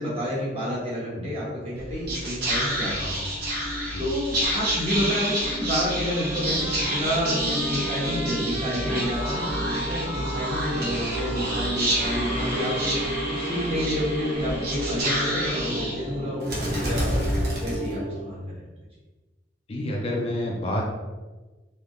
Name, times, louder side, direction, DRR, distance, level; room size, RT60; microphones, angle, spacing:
voice 1, 0.0-3.2 4.0-13.0 13.3-17.2 17.6-18.4, equal, 30° right, -7 dB, 1.1 m, -29 dB
Whispering, 1.8-18.3, right 1 dB, 55° right, 1.0 m, -28 dB
Trumpet, 6.1-13.9, equal, 5° right, 1.0 m, -39 dB
voice 2, 19.7-20.9, left 1 dB, 30° left, -1 dB, 0.4 m, -28 dB
3.4 x 2.8 x 2.5 m, 1.2 s
head